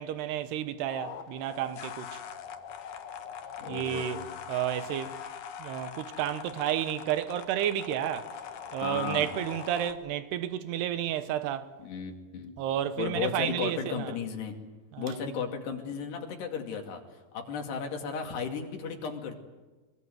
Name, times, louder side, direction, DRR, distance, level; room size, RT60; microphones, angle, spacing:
voice 1, 0.0-2.2 3.7-5.2 5.6-8.3 8.7-11.7 12.6-14.1 14.9-15.2, right 11 dB, 90° right, 3.1 m, -31 dB
sound 1, 0.9-9.9, left 8 dB, 60° left, 2.6 m, -42 dB
voice 2, 3.6-4.4 8.8-9.3 11.8-12.5 13.0-14.5 15.0-17.0 17.3-19.4, left 6 dB, 85° left, 4.6 m, -35 dB
24.5 x 22.5 x 9.3 m
omnidirectional pair, 4.6 m